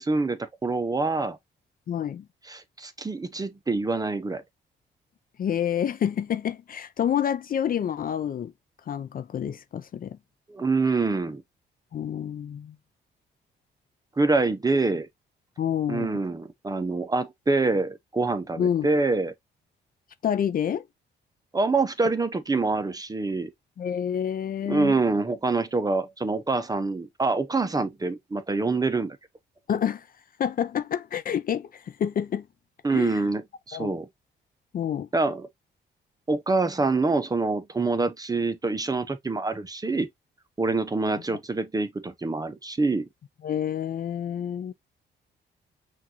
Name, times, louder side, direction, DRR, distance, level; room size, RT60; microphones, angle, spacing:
voice 1, 0.0-1.4 2.5-4.4 10.5-11.4 14.2-15.1 15.9-19.3 21.5-23.5 24.7-29.2 32.8-34.1 35.1-35.5 36.3-40.1 40.6-43.0, right 3 dB, 20° right, 0.7 m, -26 dB
voice 2, 1.9-2.3 5.4-8.5 8.9-10.2 11.9-12.8 15.6-16.1 18.6-18.9 20.2-20.9 23.8-25.0 29.7-30.1 30.4-32.5 32.9-33.2 33.7-34.0 34.7-35.1 43.4-44.7, left 9 dB, 50° left, 0.5 m, -28 dB
5.9 x 2.5 x 2.8 m
cardioid pair, 85°, 19 cm